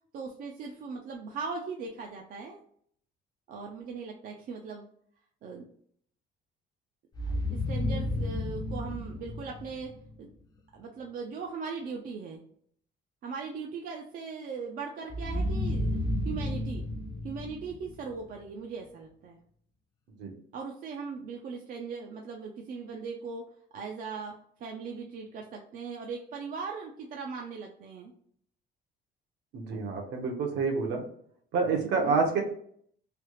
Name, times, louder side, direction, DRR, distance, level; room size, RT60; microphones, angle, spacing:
voice 1, 0.1-2.6 3.5-4.8 5.4-5.7 7.3-10.3 10.7-12.4 13.2-16.0 16.2-16.9 17.2-19.4 20.5-23.5 23.7-28.1 31.7-32.1, right 5 dB, 45° right, 1 dB, 0.4 m, -39 dB
sound 1, 7.1-10.1 15.1-18.3, left 1 dB, 20° left, 0.5 m, -32 dB
voice 2, 29.5-31.0 31.5-32.4, right 4 dB, 65° right, 2 dB, 0.9 m, -28 dB
3.2 x 2.3 x 3.0 m, 0.64 s
cardioid pair, 165°, 20 cm